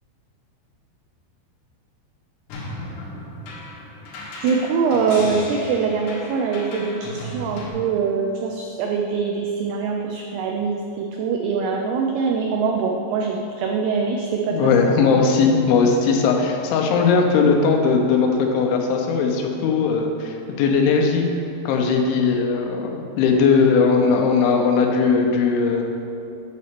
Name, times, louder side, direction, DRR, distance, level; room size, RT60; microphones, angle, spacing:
sound 1, 2.5-7.7, left 1 dB, 70° left, 3.5 m, -36 dB
voice 1, 4.4-14.6, right 5 dB, 90° right, 1 dB, 2.3 m, -23 dB
voice 2, 14.5-21.3 21.7-25.8, left 5 dB, 85° left, 2 dB, 3.3 m, -19 dB
9.6 x 4.2 x 6.8 m, 2.9 s
omnidirectional pair, 5.4 m